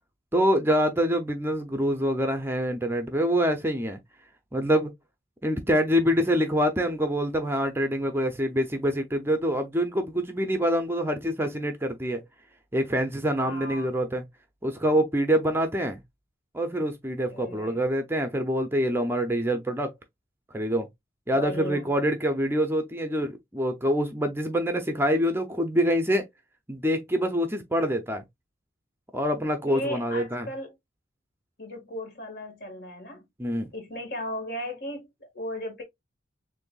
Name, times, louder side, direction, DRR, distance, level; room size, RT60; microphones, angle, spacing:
voice 1, 0.3-4.0 4.5-4.9 5.4-12.2 12.7-14.2 14.6-16.0 16.5-19.9 20.5-20.9 21.3-26.3 26.7-28.2 29.1-30.5 33.4-33.7, equal, 10° right, 0.5 m, -25 dB
voice 2, 13.4-13.9 17.3-17.8 21.3-21.9 29.7-30.8 31.6-33.2 33.7-35.8, left 1 dB, 50° left, 1.7 m, -36 dB
6.7 x 2.6 x 2.3 m
head